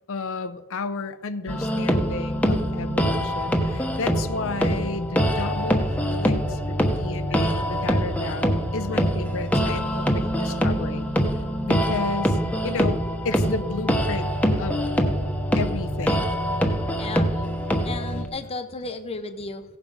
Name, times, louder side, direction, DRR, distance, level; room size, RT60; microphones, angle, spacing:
voice 1, 0.1-11.1 11.3-14.8 15.5-16.4, left 3 dB, 65° left, 10 dB, 0.7 m, -32 dB
sound 1, 1.5-18.2, equal, 5° left, 1.1 m, -24 dB
voice 2, 17.0-17.3 17.8-19.6, left 3 dB, 25° left, 7 dB, 0.7 m, -33 dB
16.5 x 7.1 x 5.5 m, 1.1 s
head